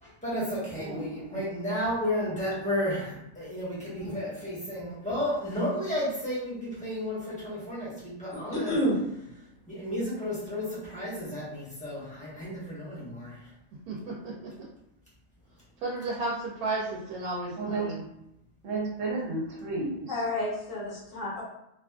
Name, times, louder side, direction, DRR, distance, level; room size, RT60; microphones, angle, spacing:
voice 1, 0.0-8.8 9.7-13.4, left 1 dB, 5° left, -10 dB, 1.0 m, -32 dB
voice 2, 0.7-1.4 17.6-17.9 18.6-20.2, right 3 dB, 65° right, -3 dB, 1.1 m, -33 dB
voice 3, 8.5-8.9 20.1-21.4, equal, 60° left, -6 dB, 1.4 m, -30 dB
voice 4, 13.9-14.5 15.8-18.0, right 2 dB, 85° right, -4 dB, 1.1 m, -33 dB
2.9 x 2.4 x 2.3 m, 0.83 s
omnidirectional pair, 1.5 m